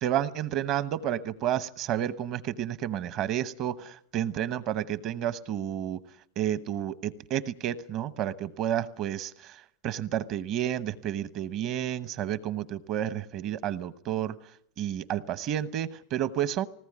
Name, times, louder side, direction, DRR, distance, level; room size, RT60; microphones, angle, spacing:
voice 1, 0.0-6.0 6.4-14.4 14.8-16.7, right 11 dB, 40° right, 14 dB, 1.0 m, -31 dB
20.5 x 18.5 x 9.8 m, 0.69 s
supercardioid pair, 160°, 0 cm